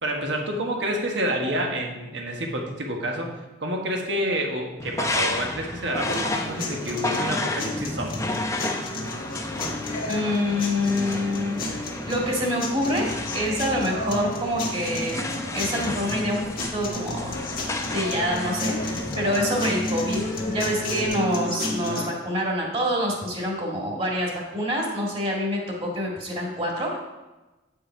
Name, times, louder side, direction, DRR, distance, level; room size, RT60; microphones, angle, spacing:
voice 1, 0.0-3.3 3.6-8.2, equal, 70° right, 1 dB, 1.4 m, -28 dB
sound 1, 4.8-21.1, left 2 dB, 15° left, 0.7 m, -32 dB
sound 2, 6.1-22.1, left 1 dB, 50° left, 1.4 m, -32 dB
voice 2, 10.1-15.2 15.5-16.4 16.7-17.4 17.9-18.8 19.2-27.0, equal, 30° right, -2 dB, 2.0 m, -26 dB
8.5 x 5.4 x 4.6 m, 1.1 s
head